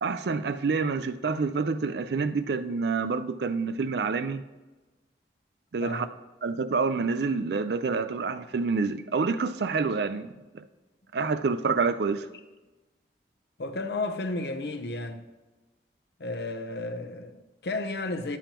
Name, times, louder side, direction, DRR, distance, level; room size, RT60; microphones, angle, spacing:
voice 1, 0.0-4.4 5.7-6.1 6.4-10.6 11.1-12.3, right 4 dB, 65° right, 0.4 m, -27 dB
voice 2, 5.8-6.1 13.6-15.2 16.2-18.4, left 2 dB, 65° left, 0.7 m, -33 dB
11.5 x 7.0 x 3.0 m
head